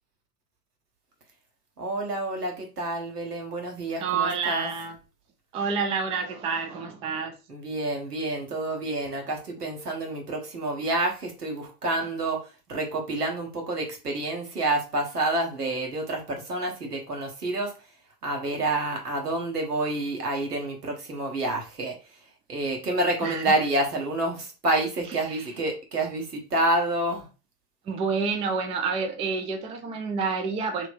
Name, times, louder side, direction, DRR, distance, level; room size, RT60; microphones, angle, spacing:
voice 1, 1.8-4.7 7.5-17.9 18.2-27.3, right 2 dB, 85° right, 1.0 m, -28 dB
voice 2, 4.0-5.0 5.5-7.4 23.2-23.6 25.3-25.4 27.9-30.9, right 5 dB, 15° right, 0.3 m, -28 dB
3.1 x 2.9 x 2.6 m
figure-of-eight pair, 70°, 46 cm